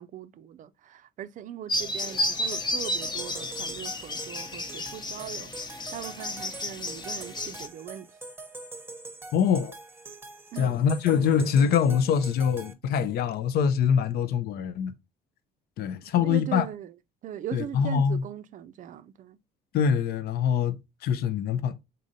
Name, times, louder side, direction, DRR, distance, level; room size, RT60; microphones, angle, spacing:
voice 1, 0.0-8.1 10.5-10.8 16.0-16.9 17.2-19.4, right 10 dB, 50° right, 0.4 m, -40 dB
sound 1, 1.7-7.7, left 1 dB, 25° left, 0.7 m, -32 dB
sound 2, 2.0-12.7, right 2 dB, 15° right, 0.9 m, -44 dB
voice 2, 9.3-9.7 10.6-14.9 15.8-16.7 17.5-18.2 19.7-20.7 21.0-21.7, left 7 dB, 65° left, 0.5 m, -24 dB
4.9 x 3.9 x 2.7 m
cardioid pair, 110°, 17 cm